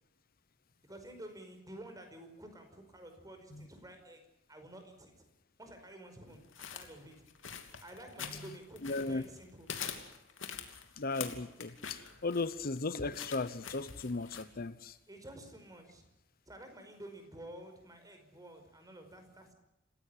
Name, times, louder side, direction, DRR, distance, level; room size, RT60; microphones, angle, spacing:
voice 1, 0.8-4.2 4.5-5.2 5.6-7.1 7.8-9.7 15.1-16.0 16.5-19.5, right 1 dB, 20° right, 5.1 m, -51 dB
sound 1, 6.5-9.4 9.7-14.4, left 7 dB, 75° left, 2.8 m, -45 dB
voice 2, 8.8-9.2 11.0-15.0, left 3 dB, 50° left, 0.9 m, -36 dB
27.5 x 16.0 x 9.9 m
head